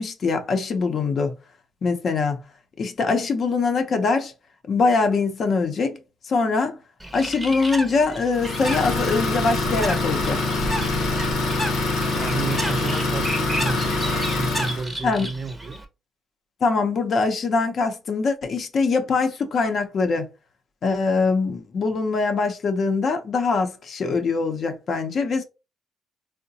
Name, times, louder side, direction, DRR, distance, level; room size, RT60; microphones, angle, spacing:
voice 1, 0.0-1.4 1.8-2.4 2.8-4.3 4.7-6.0 6.2-6.8 7.1-10.4 15.0-15.3 16.6-20.3 20.8-25.4, left 4 dB, 55° left, 0.6 m, -23 dB
Bird, 7.0-15.8, right 1 dB, 10° right, 0.7 m, -33 dB
Idling, 8.3-14.9, left 2 dB, 85° left, 0.8 m, -24 dB
voice 2, 12.0-15.8, right 4 dB, 45° right, 0.5 m, -32 dB
3.7 x 2.1 x 2.7 m
cardioid pair, 90°, 0 cm